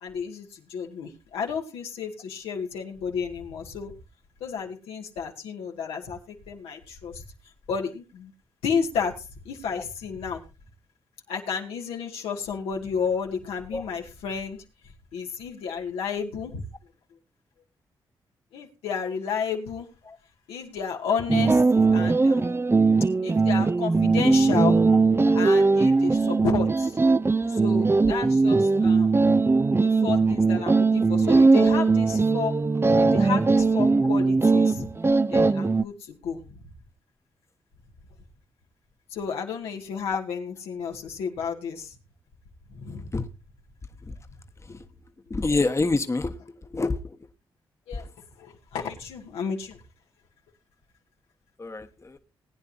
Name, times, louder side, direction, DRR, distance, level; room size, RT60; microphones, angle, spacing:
voice 1, 0.0-3.9 4.4-6.2 6.5-7.2 7.7-8.3 8.6-10.4 11.3-14.6 15.1-16.6 18.5-19.9 20.5-22.5 23.2-24.9 25.3-27.0 27.5-29.2 29.8-32.5 33.0-34.9 35.3-36.6 39.1-42.0 42.7-43.2 47.9-48.1 48.4-49.8, left 6 dB, 90° left, 2.2 m, -32 dB
sound 1, 21.3-35.8, right 3 dB, 25° right, 0.6 m, -20 dB
voice 2, 45.3-46.3 46.7-47.0 51.6-52.2, left 3 dB, 30° left, 1.3 m, -26 dB
20.0 x 9.7 x 2.7 m
supercardioid pair, 45°, 10 cm